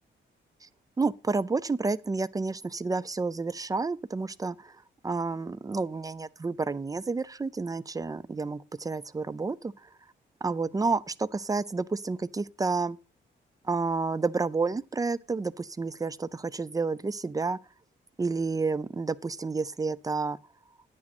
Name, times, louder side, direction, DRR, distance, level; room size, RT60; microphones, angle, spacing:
voice 1, 1.0-4.7 5.0-9.9 10.4-13.0 13.6-17.6 18.2-20.4, right 4 dB, 20° right, 0.4 m, -30 dB
9.7 x 8.7 x 4.2 m
cardioid pair, 115°, 20 cm